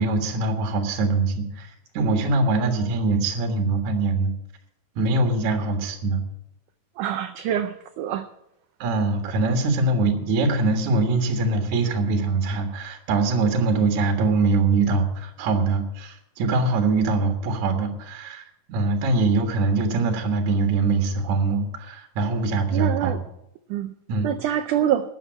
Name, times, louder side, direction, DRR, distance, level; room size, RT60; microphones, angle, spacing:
voice 1, 0.0-4.3 5.0-6.2 8.8-18.4 18.7-23.2 24.1-24.3, right 3 dB, 60° right, 4 dB, 2.7 m, -23 dB
voice 2, 7.0-8.3 22.7-23.2 23.7-23.9 24.2-25.1, right 10 dB, 85° right, 9 dB, 1.8 m, -25 dB
12.5 x 8.0 x 8.6 m, 0.80 s
omnidirectional pair, 4.4 m